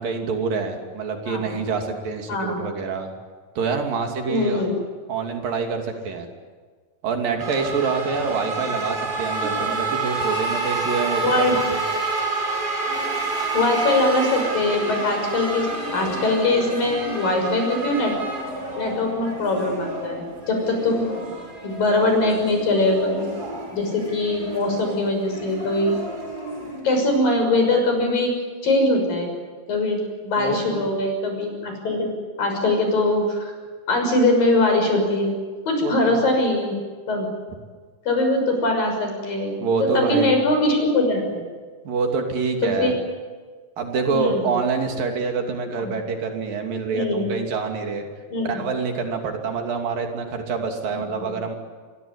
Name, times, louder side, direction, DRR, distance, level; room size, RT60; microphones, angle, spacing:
voice 1, 0.0-3.1 3.6-4.7 5.1-6.3 7.0-11.8 30.4-30.9 35.8-36.2 39.6-40.3 41.8-42.9 43.8-48.1 48.4-51.6, right 4 dB, 75° right, 3 dB, 4.6 m, -26 dB
voice 2, 4.3-4.7 9.4-9.7 11.2-11.6 13.1-18.1 18.8-21.1 21.6-23.3 23.7-26.0 26.8-28.3 28.6-29.3 29.7-32.1 32.4-33.5 33.9-35.4 35.7-36.7 37.1-37.3 38.1-39.5 39.8-41.4 42.6-42.9 44.1-44.5 45.8-45.9 46.9-47.3 48.3-48.6 50.9-51.3, left 2 dB, 75° left, 4 dB, 8.1 m, -22 dB
sound 1, 7.4-26.8, right 3 dB, 25° right, 6.3 m, -29 dB
27.0 x 22.0 x 9.8 m, 1.5 s
omnidirectional pair, 4.0 m